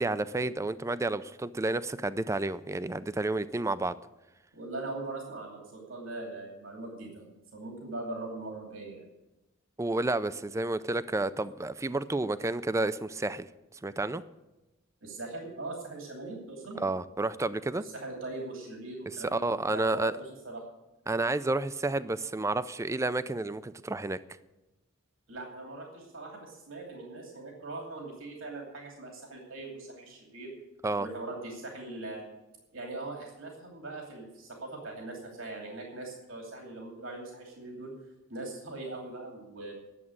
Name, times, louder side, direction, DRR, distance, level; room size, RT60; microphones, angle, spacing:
voice 1, 0.0-4.0 9.8-13.5 13.8-14.2 16.8-17.8 19.2-20.1 21.1-24.2 30.8-31.1, right 2 dB, 15° right, 15 dB, 0.4 m, -30 dB
voice 2, 4.5-7.3 7.5-9.1 15.0-16.8 17.8-20.6 25.3-30.5 31.0-32.3 32.7-38.0 38.3-39.7, right 2 dB, 85° right, 0 dB, 2.7 m, -41 dB
11.0 x 7.5 x 9.6 m, 1.0 s
head